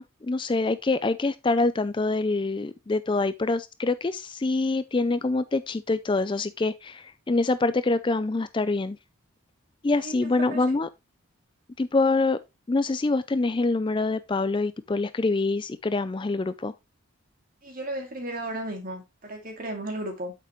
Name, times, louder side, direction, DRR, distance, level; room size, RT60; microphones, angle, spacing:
voice 1, 0.0-9.0 9.8-10.9 11.8-12.4 12.7-16.7, left 3 dB, 25° left, 0.4 m, -25 dB
voice 2, 10.0-10.6 17.6-20.3, right 1 dB, 40° right, 2.4 m, -35 dB
8.7 x 6.7 x 3.0 m
head